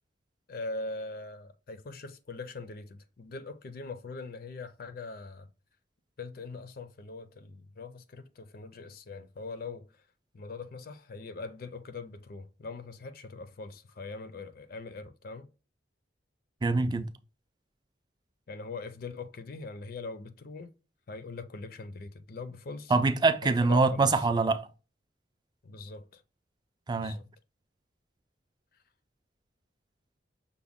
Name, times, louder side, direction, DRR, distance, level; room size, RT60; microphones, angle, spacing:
voice 1, 0.5-5.5 6.2-10.1 10.3-15.5 18.5-20.7 21.1-23.0 23.4-24.3 25.6-26.2 27.0-27.3 28.7-28.8, left 3 dB, 50° left, 0.4 m, -42 dB
voice 2, 16.6-17.1 22.9-24.7 26.9-27.2, right 3 dB, 20° right, 0.3 m, -24 dB
6.0 x 2.1 x 3.5 m
head